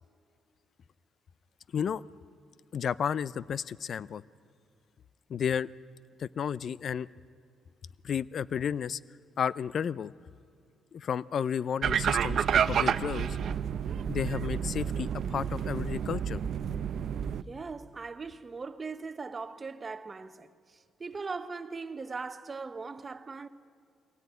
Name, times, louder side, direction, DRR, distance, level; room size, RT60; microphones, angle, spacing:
voice 1, 2.7-4.2 5.3-5.7 6.2-7.1 8.0-9.0 9.4-10.1 10.9-13.4 14.1-16.4, left 8 dB, 55° left, 0.5 m, -32 dB
sound 1, 11.8-17.4, right 8 dB, 60° right, 0.7 m, -30 dB
voice 2, 17.5-23.5, right 4 dB, 30° right, 1.1 m, -40 dB
23.0 x 17.5 x 9.6 m
cardioid pair, 90°, 0 cm